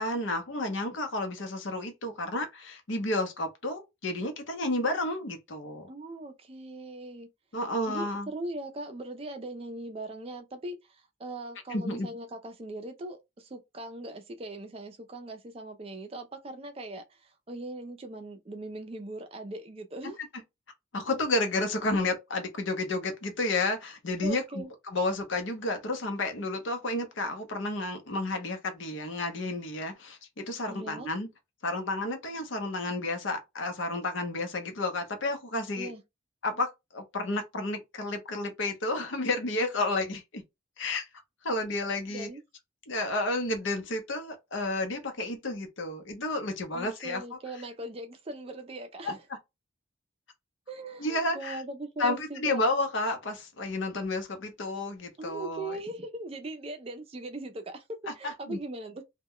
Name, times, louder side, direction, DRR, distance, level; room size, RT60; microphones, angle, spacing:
voice 1, 0.0-5.9 7.5-8.3 11.7-12.1 20.9-31.3 31.6-35.9 36.4-40.4 40.8-41.1 41.4-42.3 42.9-47.2 49.0-49.1 51.0-51.6 52.0-55.8 58.2-58.6, left 2 dB, 70° left, 0.7 m, -31 dB
voice 2, 5.9-7.3 7.9-20.2 24.2-24.7 30.7-31.1 35.8-36.0 42.1-42.4 46.7-49.2 50.7-52.6 55.2-59.0, right 2 dB, 30° right, 0.4 m, -40 dB
2.2 x 2.1 x 3.6 m
head